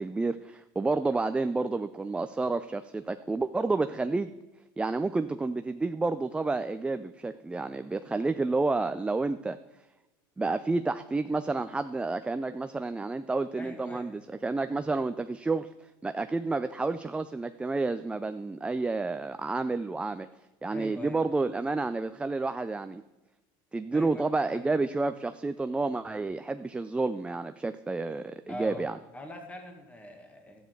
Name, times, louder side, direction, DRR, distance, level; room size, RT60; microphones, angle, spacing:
voice 1, 0.0-4.3 4.8-9.6 10.4-20.3 20.6-23.0 23.7-29.0, right 3 dB, 10° right, 10 dB, 0.3 m, -30 dB
voice 2, 13.6-14.2 20.7-21.2 23.9-24.2 24.5-24.6 28.5-28.8 29.1-30.6, left 1 dB, 10° left, 4 dB, 1.8 m, -42 dB
12.5 x 9.0 x 4.6 m, 1.1 s
supercardioid pair, 115°, 11 cm